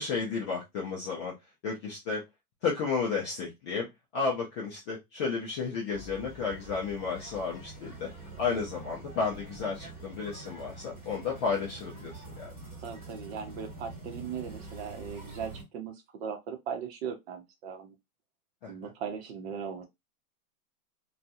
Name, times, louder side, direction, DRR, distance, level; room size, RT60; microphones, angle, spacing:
voice 1, 0.0-1.3 1.6-2.2 2.6-3.9 4.1-8.1 8.4-12.5 18.6-18.9, left 5 dB, 20° left, 0.4 m, -32 dB
sound 1, 5.9-15.6, right 2 dB, 20° right, 1.5 m, -46 dB
voice 2, 12.8-17.9 18.7-19.9, right 7 dB, 40° right, 0.8 m, -38 dB
2.7 x 2.3 x 2.5 m
hypercardioid pair, 130°, 46 cm